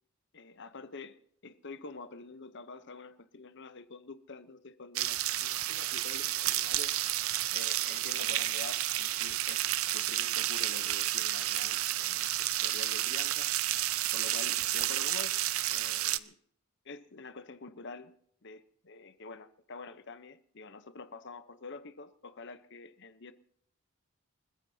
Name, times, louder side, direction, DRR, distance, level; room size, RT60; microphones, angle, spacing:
voice 1, 0.3-7.0 7.5-9.7 9.9-13.5 14.1-16.4 16.8-18.1 18.4-23.3, left 3 dB, 55° left, 0.9 m, -47 dB
sound 1, 5.0-16.2, right 14 dB, 75° right, 0.7 m, -31 dB
29.0 x 15.0 x 2.8 m
head